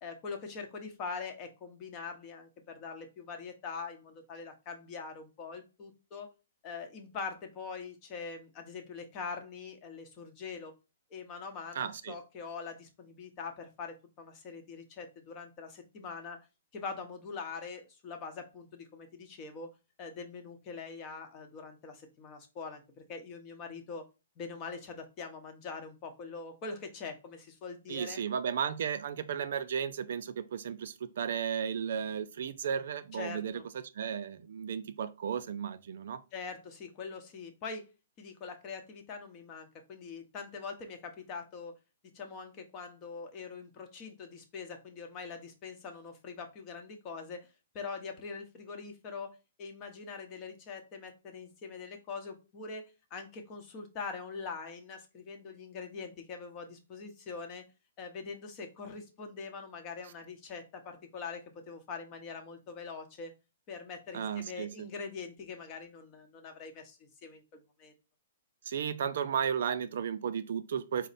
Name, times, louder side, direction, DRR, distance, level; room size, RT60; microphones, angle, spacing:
voice 1, 0.0-6.3 6.6-10.7 11.1-16.4 16.7-19.7 20.0-24.1 24.4-28.2 33.1-33.6 36.3-37.9 38.2-41.8 42.1-47.5 47.7-57.7 58.0-63.3 63.7-67.9, left 5 dB, 30° left, 0.8 m, -43 dB
voice 2, 11.8-12.2 27.9-36.2 64.1-64.9 68.7-71.1, right 7 dB, 65° right, 0.3 m, -34 dB
4.2 x 2.0 x 3.9 m
hypercardioid pair, 150°, 0 cm